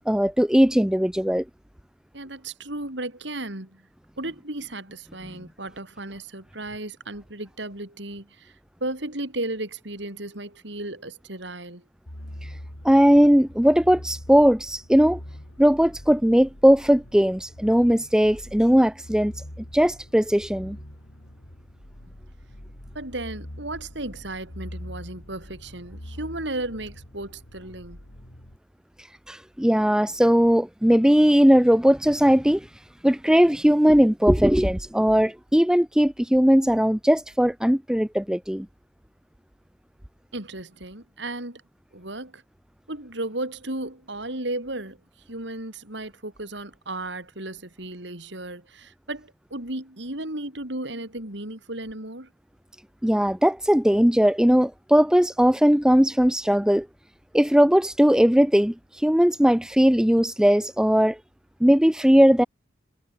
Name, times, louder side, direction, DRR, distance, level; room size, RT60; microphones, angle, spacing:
voice 1, 0.1-1.4 12.8-15.2 15.6-19.3 19.7-20.8 29.3-32.7 33.0-38.7 53.0-56.9 57.3-61.2 61.6-62.4, equal, 5° right, 0.5 m, -19 dB
voice 2, 2.1-3.9 4.2-8.5 8.8-11.8 22.9-28.0 40.3-41.6 41.9-42.4 42.9-45.0 45.3-52.3, right 2 dB, 65° right, 4.6 m, -34 dB
sound 1, 12.1-28.6, equal, 80° left, 4.4 m, -43 dB
head